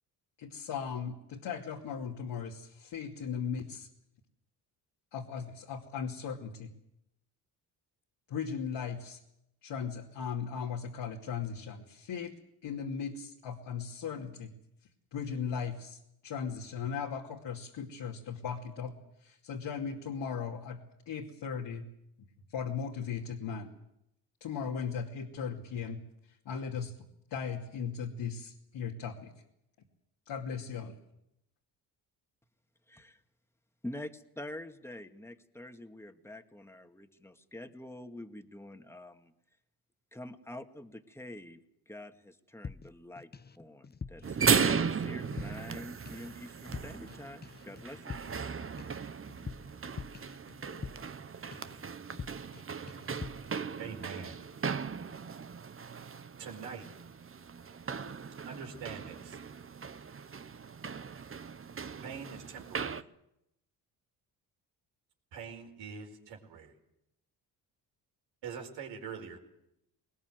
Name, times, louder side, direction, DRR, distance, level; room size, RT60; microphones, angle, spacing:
voice 1, 0.4-3.9 5.1-6.7 8.3-9.2 9.6-12.3 12.6-14.5 15.1-16.0 16.2-20.8 21.1-21.9 22.5-23.7 24.4-26.0 26.5-26.9 27.3-29.3 30.3-30.9, left 6 dB, 70° left, -2 dB, 2.7 m, -37 dB
voice 2, 32.9-33.2 33.8-39.3 40.1-41.6 41.9-43.3 43.6-48.2, left 1 dB, 5° left, 6 dB, 2.1 m, -46 dB
sound 1, 42.6-43.6 43.8-45.8 46.1-46.4 46.6-47.2 47.4-51.2 51.5-51.8 52.1-52.6 52.9-53.5, left 5 dB, 20° left, 0.8 m, -45 dB
sound 2, 44.2-63.0, right 6 dB, 30° right, 1.0 m, -36 dB
voice 3, 53.8-54.4 56.4-56.8 58.4-59.4 62.0-63.0 65.3-66.7 68.4-69.4, right 6 dB, 75° right, 2 dB, 4.7 m, -43 dB
21.0 x 20.0 x 7.9 m, 0.83 s
supercardioid pair, 60°, 44 cm